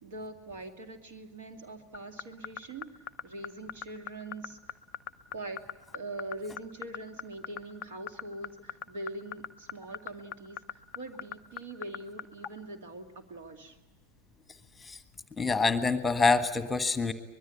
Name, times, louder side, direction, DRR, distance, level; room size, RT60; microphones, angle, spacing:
voice 1, 0.0-2.9 3.2-4.8 5.3-5.6 5.9-13.8, right 2 dB, 55° right, 6 dB, 2.4 m, -43 dB
sound 1, 1.9-12.5, left 8 dB, 30° left, 0.8 m, -37 dB
voice 2, 15.4-17.1, left 4 dB, 10° left, 10 dB, 1.5 m, -26 dB
24.5 x 21.5 x 8.3 m, 1.0 s
figure-of-eight pair, 90°, 0 cm